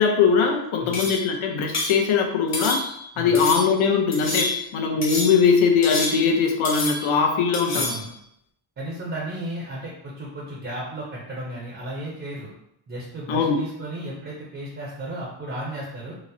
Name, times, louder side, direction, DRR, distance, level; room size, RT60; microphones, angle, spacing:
voice 1, 0.0-2.8 3.2-7.9 13.3-13.6, left 5 dB, 85° left, 3 dB, 0.7 m, -21 dB
sound 1, 0.9-1.3 1.7-2.0 2.5-3.0 3.3-3.7 4.1-4.7 5.0-5.4 5.8-6.4 6.6-7.2 7.5-8.1, left 2 dB, 35° left, 0.7 m, -28 dB
voice 2, 7.7-8.1 8.8-12.5 12.9-16.1, right 1 dB, 30° right, -4 dB, 0.4 m, -34 dB
4.0 x 2.0 x 2.6 m, 0.76 s
wide cardioid pair, 175°, 47 cm